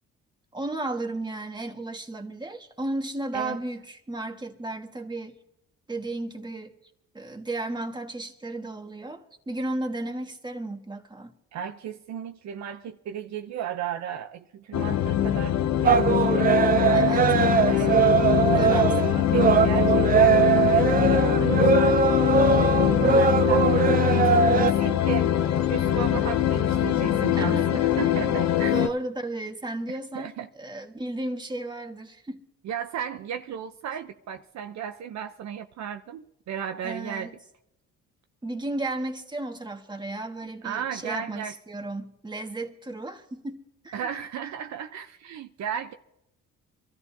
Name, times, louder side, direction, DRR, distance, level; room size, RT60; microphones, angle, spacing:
voice 1, 0.5-5.3 5.9-6.7 7.1-11.3 16.9-17.7 18.5-18.8 22.9-23.3 27.4-30.3 30.6-32.4 36.8-37.3 38.4-44.1, right 2 dB, 15° right, 1.6 m, -34 dB
voice 2, 11.5-17.2 17.6-22.0 23.0-23.7 24.1-25.3 25.7-28.7 30.1-30.5 32.6-37.3 40.6-41.5 43.9-45.9, right 9 dB, 65° right, 0.8 m, -35 dB
sound 1, 14.7-28.9, left 10 dB, 60° left, 0.8 m, -23 dB
sound 2, 15.8-24.7, right 6 dB, 30° right, 0.4 m, -21 dB
26.0 x 13.5 x 2.8 m
cardioid pair, 90°, 30 cm